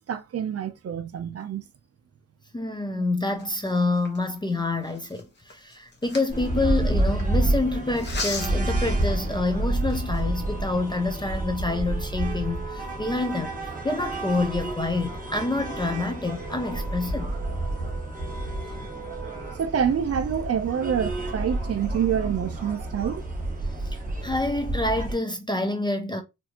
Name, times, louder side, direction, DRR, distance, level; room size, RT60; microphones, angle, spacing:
voice 1, 0.1-1.6 19.5-23.2, right 8 dB, 45° right, 0.5 m, -27 dB
voice 2, 2.5-13.6 13.8-17.4 23.9-26.2, left 2 dB, 15° left, 0.4 m, -27 dB
sound 1, 3.3-7.2 8.0-8.7 9.3-9.4 9.8-10.3, left 3 dB, 30° left, 1.0 m, -37 dB
sound 2, 6.3-25.1, right 2 dB, 25° right, 1.3 m, -29 dB
4.4 x 2.6 x 2.8 m
wide cardioid pair, 165°, 33 cm